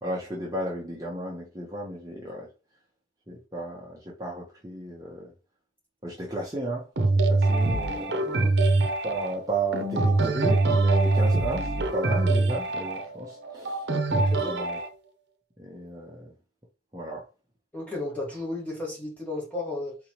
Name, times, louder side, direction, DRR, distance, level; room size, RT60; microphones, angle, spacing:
voice 1, 0.0-2.5 3.3-5.3 6.0-6.9 7.2-8.3 9.0-13.8 14.4-14.8 15.6-16.3 16.9-17.2, right 2 dB, 20° right, 1.0 m, -33 dB
sound 1, 7.0-14.9, right 2 dB, 80° right, 0.7 m, -24 dB
voice 2, 8.2-8.6 14.1-14.6 17.7-20.0, left 2 dB, 10° left, 1.7 m, -34 dB
4.1 x 3.4 x 2.9 m
head